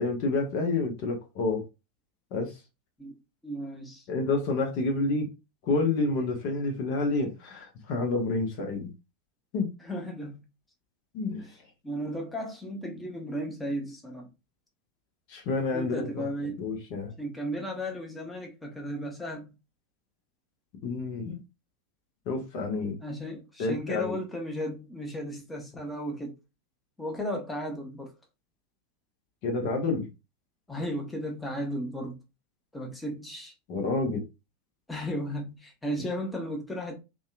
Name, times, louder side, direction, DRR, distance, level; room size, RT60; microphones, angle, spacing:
voice 1, 0.0-1.6 2.3-2.5 4.1-5.3 5.6-8.9 9.5-9.7 11.1-11.4 15.3-16.2 16.6-17.1 20.8-21.4 22.3-23.0 23.6-24.2 29.4-30.1 33.7-34.2, left 3 dB, 50° left, 0.7 m, -29 dB
voice 2, 3.0-4.0 9.8-10.4 11.4-11.5 11.8-14.3 15.7-16.7 17.2-19.5 23.0-26.4 27.0-28.1 30.7-32.2 32.7-33.5 34.9-37.0, equal, 10° left, 0.8 m, -35 dB
2.7 x 2.2 x 2.4 m
figure-of-eight pair, 85°, 0 cm